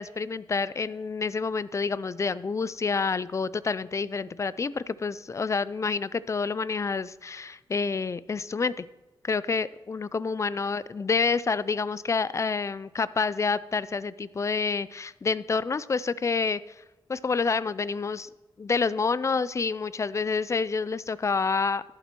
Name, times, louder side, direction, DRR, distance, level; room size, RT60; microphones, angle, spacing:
voice 1, 0.0-8.9 9.2-16.6 17.1-18.3 18.6-21.8, left 4 dB, 35° left, 18 dB, 0.4 m, -28 dB
11.5 x 11.5 x 3.0 m, 1.1 s
wide cardioid pair, 95°, 9 cm